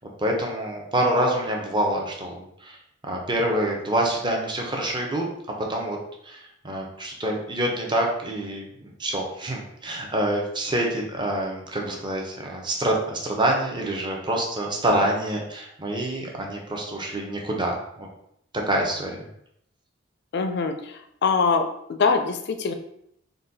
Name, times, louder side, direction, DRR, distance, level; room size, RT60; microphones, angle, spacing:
voice 1, 0.2-2.8 3.0-5.3 5.7-6.0 6.3-18.1 18.7-19.3, right 1 dB, 25° right, 0 dB, 0.7 m, -26 dB
voice 2, 20.3-21.6 21.9-22.7, left 4 dB, 55° left, 7 dB, 0.4 m, -23 dB
3.9 x 2.3 x 3.9 m, 0.74 s
head